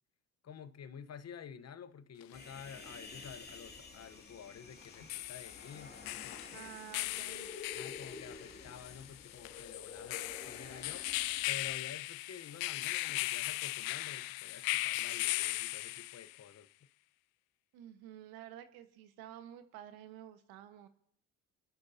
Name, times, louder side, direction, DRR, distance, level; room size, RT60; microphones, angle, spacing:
voice 1, 0.4-6.7 7.7-11.1 11.4-16.7, left 7 dB, 40° left, 1.1 m, -50 dB
sound 1, 2.2-2.3 4.8-16.4, left 20 dB, 70° left, 0.5 m, -38 dB
Human voice, 2.3-11.7, left 4 dB, 25° left, 2.6 m, -51 dB
sound 2, 4.7-12.6, left 6 dB, 90° left, 1.6 m, -67 dB
voice 2, 6.5-7.5 17.7-20.9, right 11 dB, 70° right, 1.4 m, -50 dB
26.0 x 11.5 x 2.8 m
hypercardioid pair, 50°, 38 cm